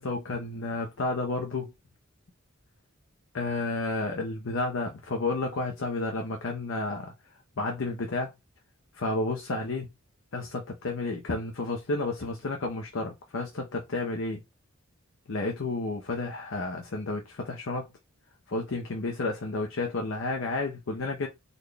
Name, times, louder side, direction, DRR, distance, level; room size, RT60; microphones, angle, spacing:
voice 1, 0.0-1.7 3.3-7.1 7.6-8.3 8.9-9.9 10.3-14.4 15.3-17.9 18.5-21.3, left 2 dB, 70° left, 0.6 m, -31 dB
4.0 x 2.2 x 3.3 m
head